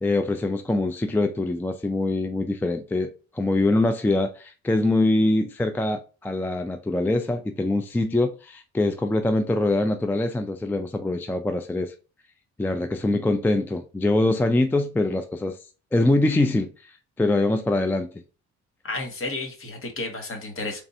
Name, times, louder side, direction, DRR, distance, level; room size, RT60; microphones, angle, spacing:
voice 1, 0.0-11.9 12.6-15.6 15.9-18.1, left 2 dB, 5° left, 0.3 m, -24 dB
voice 2, 18.8-20.8, left 2 dB, 45° left, 1.3 m, -32 dB
3.5 x 2.5 x 4.1 m
cardioid pair, 90°, 30 cm